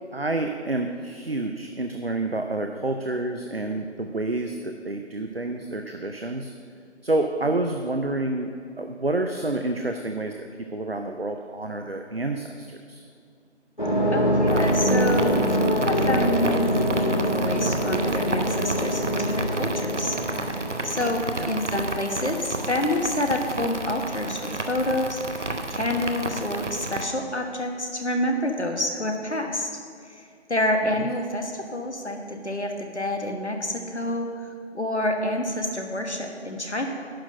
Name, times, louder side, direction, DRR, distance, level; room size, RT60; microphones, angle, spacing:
voice 1, 0.1-6.5 7.0-10.3 10.7-13.0 21.4-21.5 30.8-31.1, right 2 dB, 55° right, 5 dB, 0.6 m, -28 dB
sound 1, 13.8-21.2, equal, 45° left, 1.2 m, -24 dB
voice 2, 14.1-34.5 34.7-36.9, left 1 dB, 70° left, 3 dB, 1.4 m, -28 dB
sound 2, 14.5-27.1, right 2 dB, 85° right, 0.9 m, -31 dB
11.0 x 4.1 x 7.6 m, 2.3 s
figure-of-eight pair, 180°, 35 cm